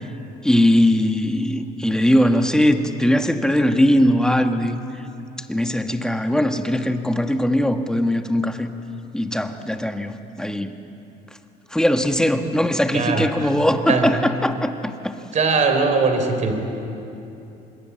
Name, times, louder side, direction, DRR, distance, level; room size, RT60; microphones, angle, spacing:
voice 1, 0.4-4.8 5.5-8.7 9.1-10.8 11.7-15.1, left 1 dB, 5° left, 6 dB, 1.5 m, -20 dB
voice 2, 12.9-13.5 13.9-14.1 15.3-16.5, right 4 dB, 45° right, 6 dB, 3.6 m, -20 dB
25.5 x 21.5 x 8.1 m, 2.8 s
cardioid pair, 110°, 17 cm